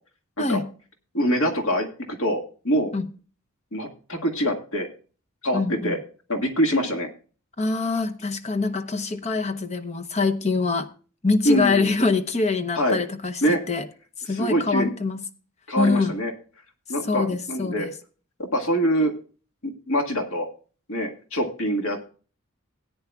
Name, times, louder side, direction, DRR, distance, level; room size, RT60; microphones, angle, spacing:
voice 1, 0.4-0.7 2.9-3.1 5.5-6.0 7.6-10.9 11.2-13.8 14.3-15.2 15.8-16.1 17.1-17.9, left 3 dB, 30° left, 0.8 m, -24 dB
voice 2, 1.1-2.9 3.7-4.9 5.4-6.0 6.3-7.1 11.4-11.9 12.8-13.0 13.4-13.6 14.3-14.9 15.7-16.3 16.9-17.9 18.4-19.1 19.6-20.5 20.9-22.1, equal, 75° left, 1.9 m, -24 dB
17.5 x 9.6 x 2.3 m
head